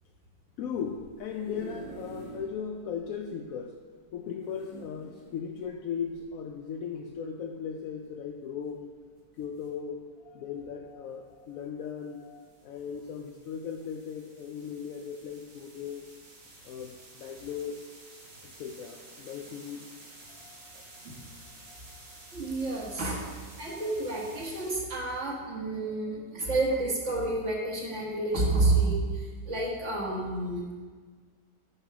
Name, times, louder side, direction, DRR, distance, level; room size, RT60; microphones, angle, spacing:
voice 1, 0.6-3.8 4.1-8.9 9.3-16.1 16.6-17.8 18.4-19.9 20.3-21.0 21.4-22.3, left 7 dB, 70° left, 3 dB, 0.8 m, -38 dB
sound 1, 1.0-2.5 3.0-3.1 3.3-3.4 4.5-5.4 6.1-6.3, right 1 dB, 90° left, 3.1 m, -45 dB
sound 2, 9.4-9.7 11.8-24.7, right 2 dB, 80° right, 2.4 m, -52 dB
voice 2, 22.3-23.3 23.6-30.7, right 2 dB, 45° right, -2 dB, 1.9 m, -29 dB
9.7 x 5.6 x 4.6 m, 1.5 s
omnidirectional pair, 1.9 m